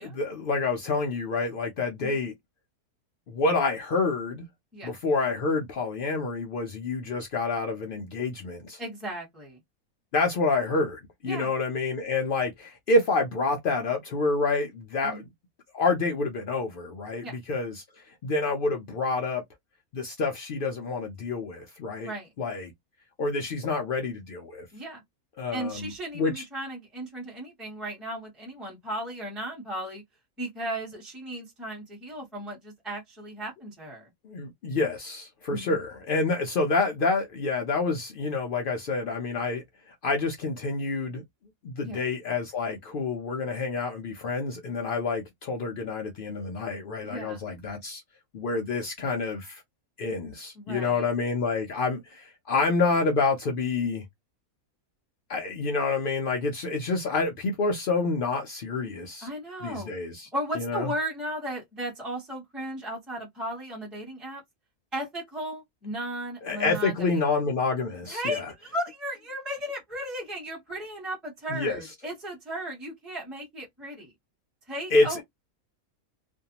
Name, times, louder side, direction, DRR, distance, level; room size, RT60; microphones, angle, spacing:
voice 1, 0.0-2.3 3.3-4.5 4.8-8.8 10.1-15.3 15.7-19.4 19.9-22.1 22.4-22.7 23.2-24.7 25.4-26.4 34.2-41.2 41.6-48.0 48.3-49.6 50.0-54.0 55.3-59.3 59.6-60.3 60.6-60.9 66.4-68.5 71.5-71.8 74.9-75.2, left 3 dB, 75° left, 0.5 m, -28 dB
voice 2, 8.8-9.6 11.2-11.5 15.0-15.2 17.2-17.4 22.0-22.3 24.7-25.0 25.5-30.0 30.4-34.1 35.5-35.8 41.8-42.0 47.0-47.5 50.5-51.0 59.2-59.9 60.3-64.4 64.9-67.3 68.1-74.1 74.7-75.2, right 1 dB, ahead, 0.8 m, -35 dB
2.6 x 2.2 x 2.8 m
omnidirectional pair, 1.5 m